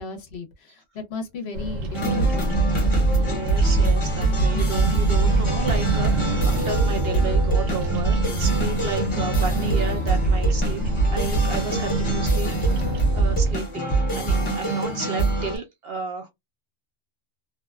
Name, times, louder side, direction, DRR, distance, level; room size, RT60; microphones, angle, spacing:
voice 1, 0.0-2.9, left 4 dB, 60° left, 0.8 m, -35 dB
Bird vocalization bird call bird song, 1.5-13.6, right 1 dB, 90° right, 1.1 m, -28 dB
sound 1, 1.9-15.6, right 2 dB, 25° left, 0.8 m, -23 dB
voice 2, 3.1-10.8 11.1-16.3, right 4 dB, 60° right, 0.7 m, -33 dB
2.6 x 2.2 x 2.3 m
omnidirectional pair, 1.3 m